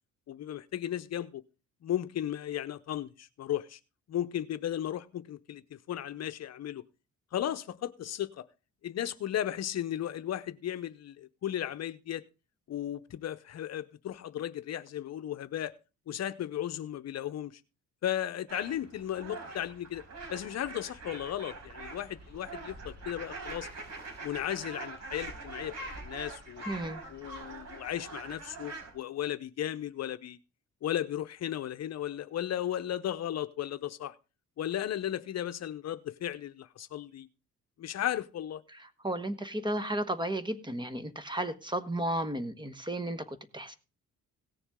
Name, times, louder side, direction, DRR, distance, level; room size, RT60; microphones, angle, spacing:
voice 1, 0.3-1.4 1.8-3.8 4.1-6.8 7.3-8.5 8.8-12.2 12.7-15.7 16.1-17.6 18.0-20.0 20.3-23.7 24.2-26.6 27.1-30.4 30.8-34.2 34.6-37.3 37.8-38.6, left 11 dB, 60° left, 0.7 m, -35 dB
sound 1, 18.5-28.9, right 3 dB, 60° right, 4.5 m, -44 dB
voice 2, 26.7-27.0 38.7-38.8 39.0-43.7, right 1 dB, 15° right, 1.3 m, -33 dB
17.5 x 7.0 x 3.6 m
cardioid pair, 90°, 30 cm